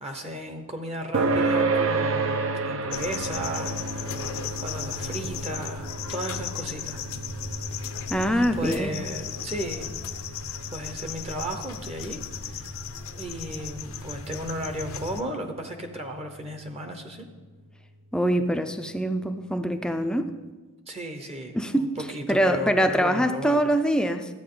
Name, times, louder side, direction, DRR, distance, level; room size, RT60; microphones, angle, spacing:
voice 1, 0.0-4.3 4.6-7.0 8.3-9.9 10.7-12.7 13.1-17.3 20.9-23.7, right 1 dB, 30° right, 5 dB, 0.8 m, -35 dB
sound 1, 1.1-16.0, right 3 dB, 65° right, 0.7 m, -32 dB
sound 2, 2.9-15.2, left 7 dB, 70° left, 0.6 m, -36 dB
voice 2, 8.1-9.0 18.1-20.3 21.5-21.9 22.3-24.3, equal, 5° left, 7 dB, 0.4 m, -24 dB
12.5 x 8.6 x 3.8 m, 1.3 s
head